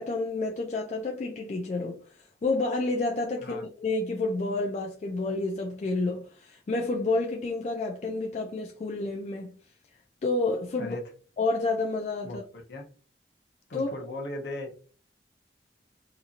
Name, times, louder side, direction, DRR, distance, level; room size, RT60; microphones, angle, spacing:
voice 1, 0.0-2.0 2.4-9.6 10.2-11.0 11.4-12.4 13.7-13.9, left 3 dB, 40° left, 0.3 m, -29 dB
voice 2, 13.7-14.7, left 1 dB, 65° left, 0.7 m, -37 dB
2.9 x 2.5 x 2.4 m
head